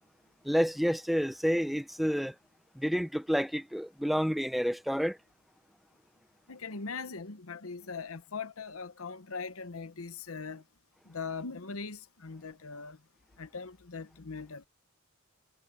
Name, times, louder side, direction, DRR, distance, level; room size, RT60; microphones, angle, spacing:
voice 1, 0.4-2.4 2.8-5.2, equal, ahead, 0.8 m, -29 dB
voice 2, 6.5-10.6 11.0-13.0 13.4-14.7, left 4 dB, 75° left, 1.0 m, -40 dB
head